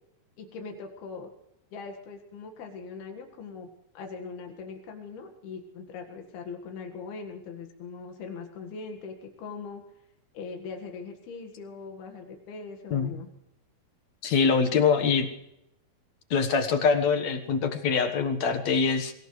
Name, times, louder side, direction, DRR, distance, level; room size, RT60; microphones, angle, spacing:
voice 1, 0.4-1.3 1.7-3.7 4.0-9.8 10.3-13.3, left 4 dB, 85° left, 4 dB, 3.8 m, -41 dB
voice 2, 14.2-15.3 16.3-19.1, left 5 dB, 55° left, 7 dB, 2.3 m, -24 dB
23.5 x 19.0 x 3.3 m, 0.82 s
omnidirectional pair, 4.3 m